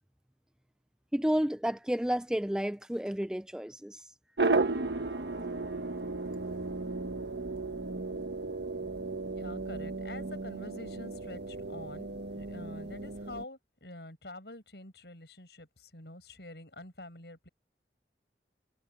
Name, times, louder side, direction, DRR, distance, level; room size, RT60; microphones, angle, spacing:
voice 1, 1.1-4.0, equal, 5° right, 0.4 m, -31 dB
sound 1, 4.4-13.4, right 3 dB, 75° right, 1.4 m, -34 dB
voice 2, 8.8-12.1 12.4-17.5, left 2 dB, 70° left, 7.1 m, -47 dB
head